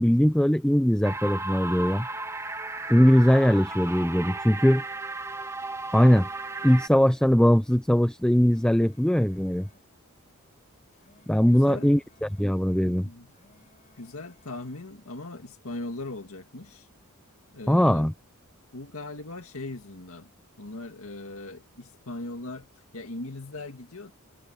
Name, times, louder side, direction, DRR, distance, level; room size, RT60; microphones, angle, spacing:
voice 1, 0.0-2.1 2.9-4.8 5.9-6.3 6.6-9.7 11.3-13.1 17.7-18.1, equal, 5° left, 0.5 m, -21 dB
Sweeping Synth, 1.0-6.9, right 2 dB, 15° right, 1.5 m, -35 dB
sound 1, 5.8-7.4 8.1-9.9 10.7-12.5 13.2-14.9, left 2 dB, 35° left, 5.5 m, -62 dB
voice 2, 11.4-11.9 12.8-13.3 14.0-16.9 17.5-18.1 18.7-20.3 20.6-22.7 22.9-24.1, left 2 dB, 70° left, 2.1 m, -39 dB
head